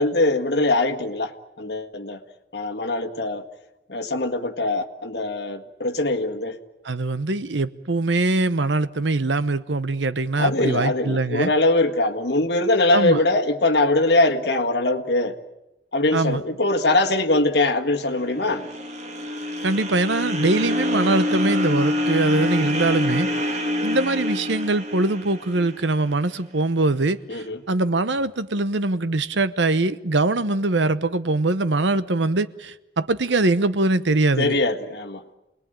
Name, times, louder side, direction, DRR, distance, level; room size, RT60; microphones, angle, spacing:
voice 1, 0.0-1.3 1.6-2.2 2.5-3.4 3.9-6.6 10.3-15.4 15.9-18.7 27.3-27.6 34.4-35.2, left 2 dB, 65° left, 1.8 m, -22 dB
voice 2, 6.8-11.5 12.9-13.2 16.1-16.4 19.6-23.3 23.8-34.6, right 2 dB, 85° right, 1.0 m, -22 dB
sound 1, 18.0-26.2, left 1 dB, 40° right, 2.5 m, -26 dB
29.0 x 20.0 x 9.0 m
head